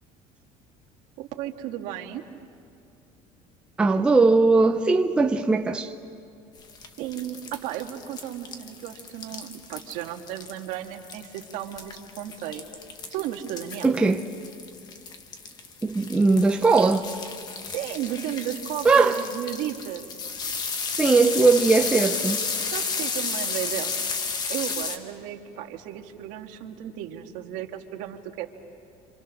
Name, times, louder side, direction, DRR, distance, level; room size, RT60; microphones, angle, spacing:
voice 1, 1.2-2.2 7.0-12.6 13.1-14.0 17.7-20.1 22.7-24.0 24.5-28.5, right 12 dB, 65° right, 1.6 m, -34 dB
voice 2, 3.8-5.9 13.8-14.2 15.8-17.1 18.8-19.2 21.0-22.4, right 3 dB, 5° right, 0.5 m, -19 dB
sound 1, 6.6-25.0, left 5 dB, 30° left, 1.3 m, -33 dB
27.5 x 27.0 x 6.3 m
cardioid pair, 175°, 14 cm